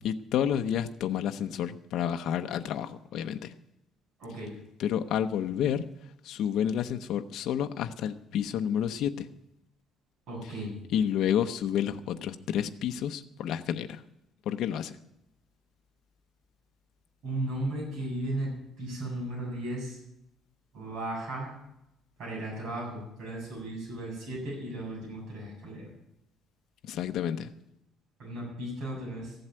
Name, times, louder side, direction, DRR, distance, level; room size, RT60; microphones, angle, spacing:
voice 1, 0.0-3.5 4.8-5.8 6.2-9.3 10.9-14.0 14.5-14.9 26.9-27.5, left 9 dB, 60° left, 7 dB, 0.7 m, -30 dB
voice 2, 4.2-4.5 10.3-10.7 17.2-20.0 20.7-21.5 22.2-25.9 28.2-29.4, right 1 dB, 55° right, -4 dB, 7.6 m, -35 dB
15.0 x 7.9 x 8.9 m, 0.83 s
cardioid pair, 175°, 0 cm